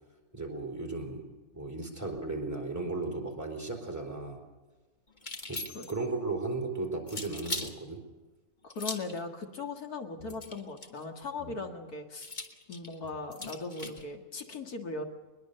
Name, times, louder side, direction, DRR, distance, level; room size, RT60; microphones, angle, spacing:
voice 1, 0.3-1.3 1.5-4.4 5.5-5.6 5.9-8.0 10.2-10.3 11.4-11.6, right 3 dB, 10° right, 1 dB, 4.0 m, -35 dB
sound 1, 5.2-6.1 7.1-7.7 8.7-9.2 10.3-11.0 12.2-14.0, left 2 dB, 30° left, 1.8 m, -39 dB
voice 2, 8.6-12.3 12.7-15.0, left 3 dB, 90° left, 4 dB, 2.4 m, -39 dB
21.5 x 21.5 x 6.7 m, 1.3 s
omnidirectional pair, 1.6 m